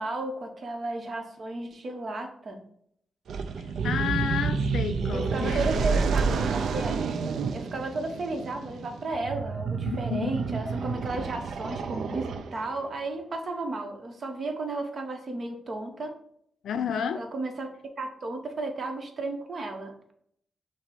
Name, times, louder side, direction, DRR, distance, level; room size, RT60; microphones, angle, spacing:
voice 1, 0.0-2.6 5.1-7.0 7.5-16.2 17.1-20.1, right 2 dB, 50° right, 0.8 m, -34 dB
sound 1, 3.3-12.8, right 5 dB, 80° right, 0.4 m, -29 dB
voice 2, 3.8-5.7 9.8-10.4 16.6-17.3, left 7 dB, 85° left, 0.4 m, -31 dB
5.8 x 2.0 x 4.1 m
cardioid pair, 85°, 0 cm